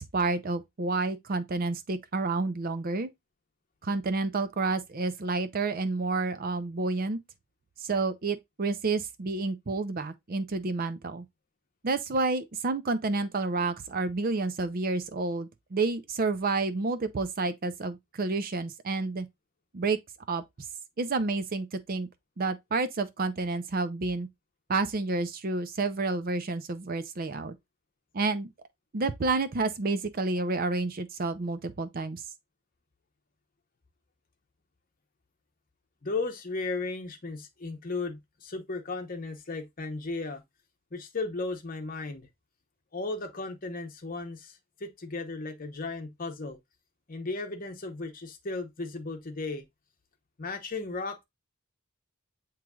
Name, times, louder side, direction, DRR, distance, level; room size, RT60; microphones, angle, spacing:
voice 1, 0.0-3.1 3.8-7.2 7.8-11.2 11.8-19.3 19.7-20.0 20.3-20.4 21.0-22.1 22.4-24.3 24.7-27.5 28.1-28.5 28.9-32.2, right 3 dB, 40° right, 0.5 m, -29 dB
voice 2, 36.0-40.4 40.9-42.3 42.9-46.6 47.1-49.6 50.4-51.2, left 3 dB, 40° left, 0.8 m, -35 dB
7.4 x 3.1 x 2.3 m
head